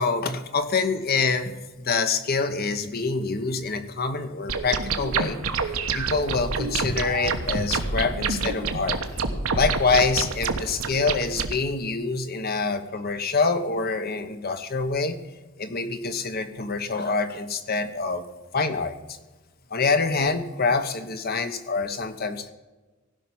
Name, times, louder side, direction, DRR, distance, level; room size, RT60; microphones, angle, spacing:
voice 1, 0.0-9.2 9.5-15.2 15.6-18.2 18.5-19.2 19.7-22.5, left 4 dB, 45° left, 9 dB, 1.1 m, -26 dB
sound 1, 4.5-11.5, right 4 dB, 80° right, 1.2 m, -27 dB
16.0 x 5.9 x 9.5 m, 1.2 s
head